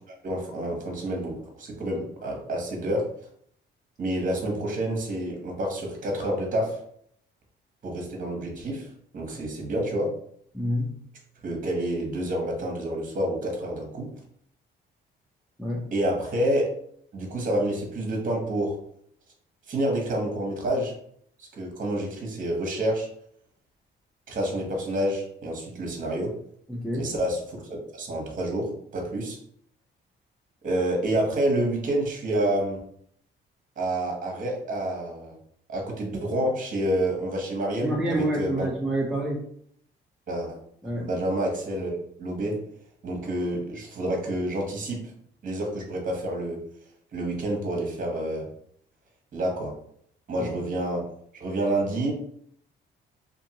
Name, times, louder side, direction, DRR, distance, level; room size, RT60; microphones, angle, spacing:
voice 1, 0.2-3.1 4.0-6.8 7.8-8.9 9.1-10.1 11.4-14.1 15.9-16.7 17.1-18.8 19.7-20.9 21.4-23.1 24.3-26.3 27.0-29.4 30.6-32.8 33.8-35.4 35.7-38.7 40.3-40.6 40.9-41.9 42.2-42.6 43.0-45.0 45.4-46.6 47.1-48.5 49.3-49.7 50.3-51.0 51.3-52.1, right 1 dB, 40° right, 1 dB, 0.9 m, -28 dB
voice 2, 10.5-11.0 15.6-15.9 26.7-27.1 37.8-39.4 40.8-41.1 50.4-50.5, right 1 dB, ahead, -4 dB, 0.5 m, -28 dB
2.6 x 2.6 x 2.8 m, 0.66 s
cardioid pair, 90°, 20 cm